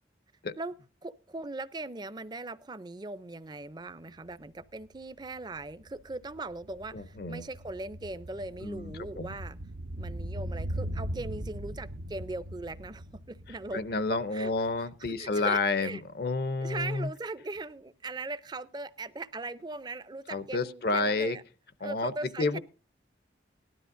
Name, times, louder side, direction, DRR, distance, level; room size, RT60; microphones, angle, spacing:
voice 1, 1.0-9.6 9.9-13.8 14.3-14.5 15.2-16.0 16.6-21.4 21.8-22.6, right 2 dB, 25° right, 15 dB, 0.5 m, -39 dB
sound 1, 4.2-4.3 4.6-15.0 15.2-15.3, right 1 dB, 85° right, 0.9 m, -40 dB
voice 2, 6.9-7.5 8.6-9.4 13.7-17.1 20.3-21.4 21.8-22.1 22.4-22.6, left 3 dB, 60° left, 14 dB, 0.6 m, -30 dB
18.0 x 12.5 x 2.6 m, 0.35 s
head